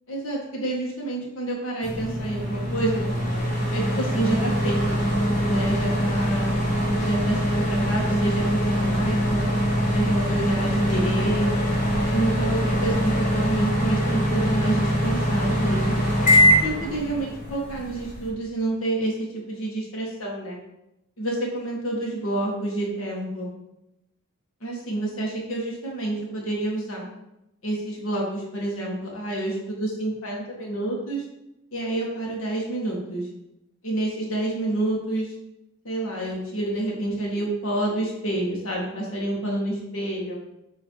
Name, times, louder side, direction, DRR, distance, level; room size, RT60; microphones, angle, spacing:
voice 1, 0.1-3.1 3.7-5.0 5.4-6.6 7.0-9.5 9.9-11.5 12.1-16.0 16.6-20.6 21.2-23.5 24.6-27.0 27.6-31.2 31.7-33.3 33.8-35.3 35.8-40.4, right 1 dB, 75° left, -3 dB, 1.6 m, -28 dB
sound 1, 1.8-18.3, equal, 40° left, 1.5 m, -23 dB
7.4 x 3.2 x 4.5 m, 0.88 s
head